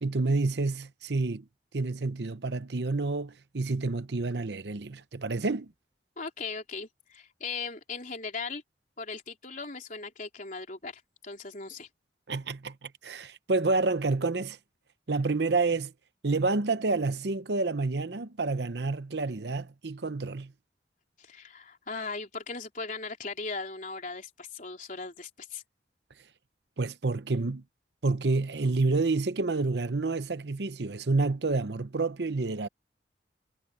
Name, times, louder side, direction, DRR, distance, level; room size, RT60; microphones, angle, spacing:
voice 1, 0.0-1.4 1.7-5.7 12.3-14.6 15.1-15.9 16.2-20.5 26.8-27.6 28.0-32.7, right 3 dB, 70° right, 0.8 m, -29 dB
voice 2, 6.2-8.6 9.0-11.9 21.2-25.6, left 4 dB, 45° left, 3.7 m, -38 dB
head